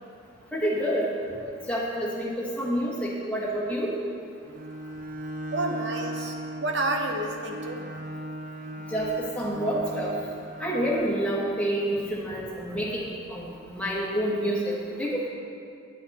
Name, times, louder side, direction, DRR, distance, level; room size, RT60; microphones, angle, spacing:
voice 1, 0.5-1.1 1.4-3.9 8.9-10.1 10.6-13.4 13.7-15.3, equal, 5° left, -6 dB, 1.4 m, -28 dB
Bowed string instrument, 4.4-11.5, right 1 dB, 40° right, 0.5 m, -38 dB
voice 2, 5.5-8.0, right 2 dB, 55° right, 2 dB, 0.9 m, -30 dB
8.9 x 8.4 x 4.2 m, 2.4 s
head